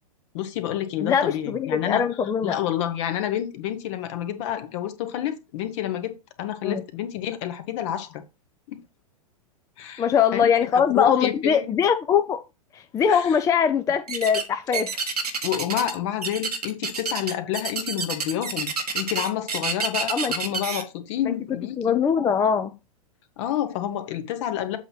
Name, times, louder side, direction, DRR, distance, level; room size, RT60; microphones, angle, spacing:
voice 1, 0.3-2.1 2.4-8.2 8.7-8.8 9.8-10.1 10.3-10.4 10.7-11.7 13.1-13.4 15.4-21.9 23.4-24.8, left 11 dB, 50° left, 1.3 m, -29 dB
voice 2, 1.0-2.6 6.6-6.8 10.0-12.4 12.7-15.0 20.1-20.3 21.2-21.3 21.8-22.7, left 7 dB, 15° left, 0.4 m, -22 dB
sound 1, 14.1-14.5 14.7-16.0 16.2-20.8, right 5 dB, 90° right, 1.2 m, -28 dB
7.8 x 2.9 x 5.9 m
hypercardioid pair, 110°, 19 cm